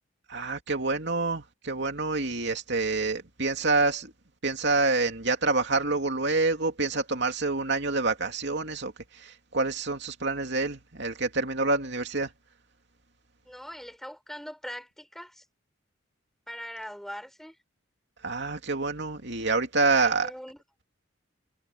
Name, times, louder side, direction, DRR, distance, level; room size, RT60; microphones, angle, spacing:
voice 1, 0.3-4.1 4.4-8.9 9.2-12.3 18.2-20.3, right 3 dB, 60° right, 2.8 m, -27 dB
voice 2, 13.5-15.4 16.5-17.6 20.0-20.6, equal, ahead, 5.2 m, -41 dB
head